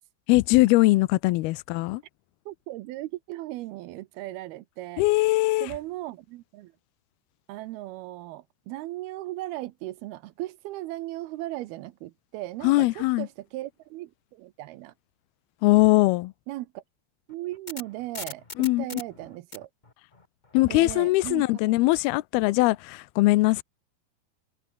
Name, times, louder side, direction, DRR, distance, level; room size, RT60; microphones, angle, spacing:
voice 1, 0.3-2.0 5.0-5.7 12.6-13.3 15.6-16.3 18.6-18.9 20.5-23.6, left 20 dB, 85° left, 2.6 m, -21 dB
voice 2, 2.5-5.0 5.6-6.7 7.5-14.9 16.5-16.8 17.3-19.7 20.7-21.7, right 17 dB, 80° right, 2.7 m, -37 dB
sound 1, 17.3-21.5, left 3 dB, 30° left, 0.8 m, -42 dB
omnidirectional pair, 4.5 m